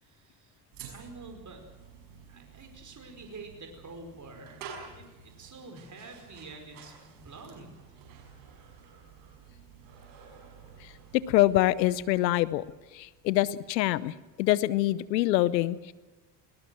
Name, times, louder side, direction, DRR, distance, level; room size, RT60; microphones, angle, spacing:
voice 1, 0.0-0.6 0.9-1.6 2.3-7.7, right 3 dB, 35° right, 4 dB, 5.1 m, -47 dB
sound 1, 0.7-14.0, right 7 dB, 80° right, 6.0 m, -51 dB
voice 2, 11.3-12.6 12.9-15.9, left 15 dB, 90° left, 19 dB, 0.9 m, -25 dB
21.5 x 19.0 x 7.7 m, 1.2 s
hypercardioid pair, 60°, 49 cm